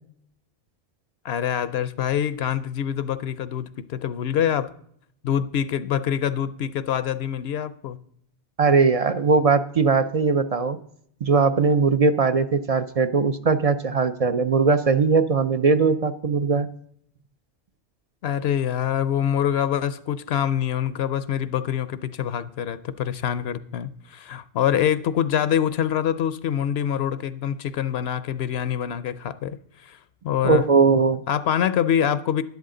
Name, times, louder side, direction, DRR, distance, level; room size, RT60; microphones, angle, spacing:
voice 1, 1.2-4.7 5.2-8.0 18.2-30.0 30.2-30.7 31.3-32.4, left 9 dB, 75° left, 0.8 m, -25 dB
voice 2, 8.6-10.8 11.2-16.7 30.4-31.2, right 4 dB, 50° right, 0.5 m, -20 dB
12.0 x 10.5 x 3.8 m
omnidirectional pair, 1.1 m